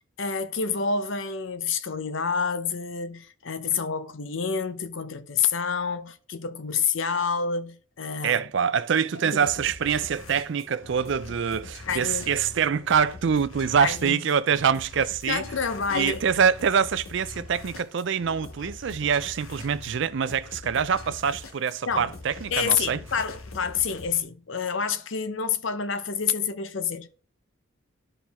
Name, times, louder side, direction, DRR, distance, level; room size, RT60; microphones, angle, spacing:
voice 1, 0.2-8.4 9.2-9.4 11.9-12.3 13.8-14.2 15.3-16.2 21.9-22.1 22.5-27.2, left 6 dB, 65° left, 0.7 m, -28 dB
voice 2, 8.2-15.4 15.9-23.0, right 7 dB, 60° right, 0.4 m, -25 dB
sound 1, 9.4-24.2, left 3 dB, 80° left, 1.3 m, -43 dB
11.5 x 4.4 x 3.5 m
head